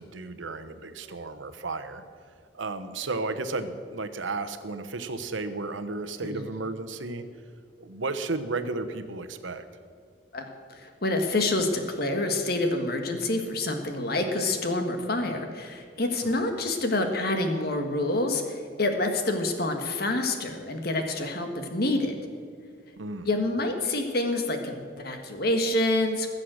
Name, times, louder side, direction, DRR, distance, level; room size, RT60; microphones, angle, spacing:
voice 1, 0.0-2.0 2.5-7.2 7.8-9.6 23.0-23.3, right 3 dB, 90° right, 10 dB, 1.0 m, -33 dB
voice 2, 10.3-22.2 23.2-26.3, left 2 dB, 55° left, 5 dB, 1.6 m, -27 dB
20.5 x 7.6 x 6.5 m, 2.1 s
head